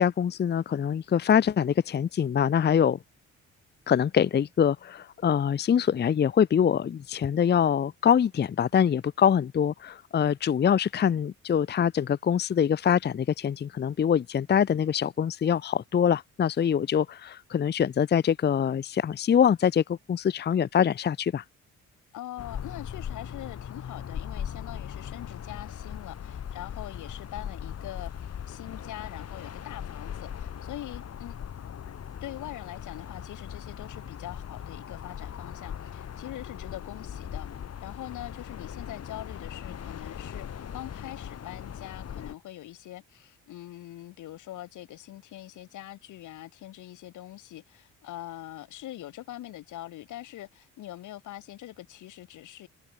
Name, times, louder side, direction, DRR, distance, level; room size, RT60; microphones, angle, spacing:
voice 1, 0.0-3.0 3.9-21.4, left 8 dB, 35° left, 0.6 m, -24 dB
voice 2, 22.1-31.3 32.2-52.7, left 14 dB, 80° left, 2.2 m, -43 dB
sound 1, 22.4-42.3, left 8 dB, 55° left, 3.4 m, -39 dB
cardioid pair, 90°, 30 cm